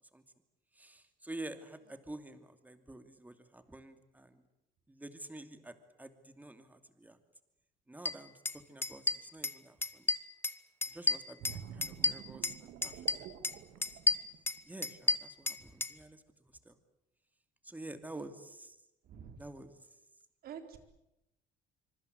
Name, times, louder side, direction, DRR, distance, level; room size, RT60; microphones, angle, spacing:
voice 1, 0.8-4.4 4.9-7.2 7.9-10.1 10.9-13.3 14.6-16.2 16.6-16.7 17.6-18.8 19.4-19.7, right 2 dB, 10° right, 9 dB, 2.7 m, -49 dB
sound 1, 8.0-8.1 8.4-8.6 8.8-9.6 9.8-10.5 10.8-12.6 12.8-13.5 13.8-15.9, left 3 dB, 15° left, 1.1 m, -31 dB
sound 2, 11.4-15.0 15.4-15.6, right 9 dB, 85° right, 2.3 m, -49 dB
voice 2, 20.4-20.8, right 8 dB, 65° right, 7 dB, 4.0 m, -47 dB
25.0 x 24.0 x 8.0 m, 0.89 s
cardioid pair, 110°, 17 cm